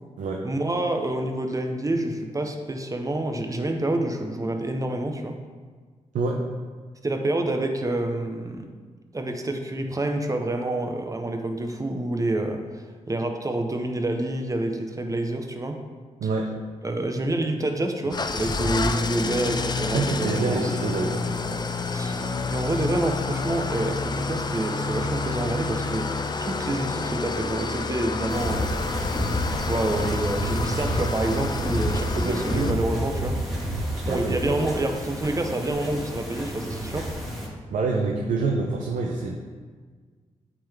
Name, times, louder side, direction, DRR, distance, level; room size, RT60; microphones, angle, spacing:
voice 1, 0.4-5.4 7.0-8.6 9.1-12.8 13.1-15.8 16.8-20.7 21.4-21.6 21.9-26.1 26.4-28.7 29.5-33.4 34.0-37.1, right 2 dB, 25° right, 4 dB, 0.8 m, -28 dB
voice 2, 6.1-6.5 16.2-16.5 19.9-21.4 32.1-32.8 34.1-34.7 37.7-39.4, right 3 dB, 85° right, 1 dB, 0.6 m, -27 dB
Engine starting / Idling, 18.1-32.7, left 4 dB, 35° left, 0.4 m, -29 dB
sound 1, 28.3-37.5, equal, ahead, 1.8 m, -30 dB
8.4 x 3.8 x 3.5 m, 1.5 s
cardioid pair, 65°, 13 cm